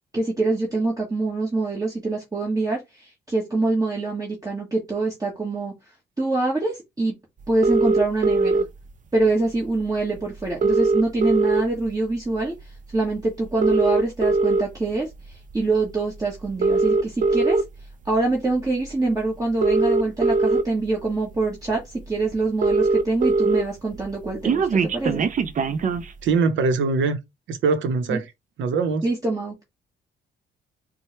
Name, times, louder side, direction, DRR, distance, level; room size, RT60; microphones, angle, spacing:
voice 1, 0.1-5.7 6.2-7.1 7.5-8.6 9.1-12.5 12.9-15.1 15.5-17.6 18.0-25.2 28.1-28.2 29.0-29.6, right 2 dB, 15° right, 1.3 m, -25 dB
sound 1, 7.6-8.6 9.8-9.9 10.2-10.3 10.5-11.9 12.4-12.6 13.5-14.6 15.3-15.6 16.5-17.6 18.8-18.9 19.4-20.6 21.3-21.4 21.7-21.8 22.0-22.1 22.3-23.6 23.9-26.1, right 3 dB, 40° right, 0.5 m, -20 dB
voice 2, 26.2-27.2 27.5-28.3 28.6-29.1, right 4 dB, 70° right, 0.8 m, -22 dB
4.2 x 2.2 x 3.1 m
cardioid pair, 90°, 20 cm